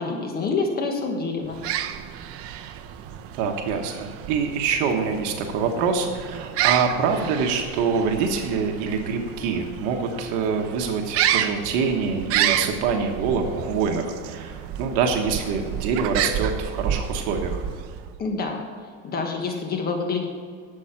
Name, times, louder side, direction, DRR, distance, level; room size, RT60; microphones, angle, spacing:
voice 1, 0.0-1.6 18.2-18.6 19.0-20.3, left 4 dB, 30° left, 3 dB, 1.3 m, -27 dB
sound 1, 1.4-18.2, right 10 dB, 45° right, 0.7 m, -30 dB
voice 2, 3.4-17.6, right 5 dB, 70° right, 3 dB, 1.3 m, -25 dB
11.5 x 7.6 x 5.8 m, 2.1 s
cardioid pair, 155°, 32 cm